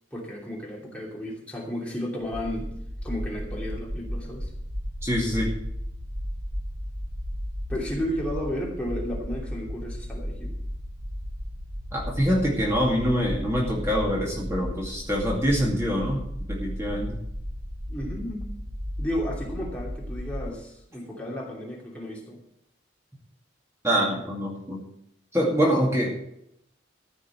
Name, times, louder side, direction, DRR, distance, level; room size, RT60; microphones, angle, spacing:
voice 1, 0.1-2.7 3.0-4.5 7.7-10.6 17.9-18.5 19.0-22.4, equal, 5° left, -3 dB, 2.7 m, -33 dB
sound 1, 2.3-20.5, equal, 40° right, 1.2 m, -34 dB
voice 2, 5.0-5.6 11.9-16.2 16.5-17.2 23.8-24.8 25.3-26.1, equal, 15° right, -3 dB, 2.3 m, -25 dB
14.5 x 6.0 x 7.6 m, 0.76 s
head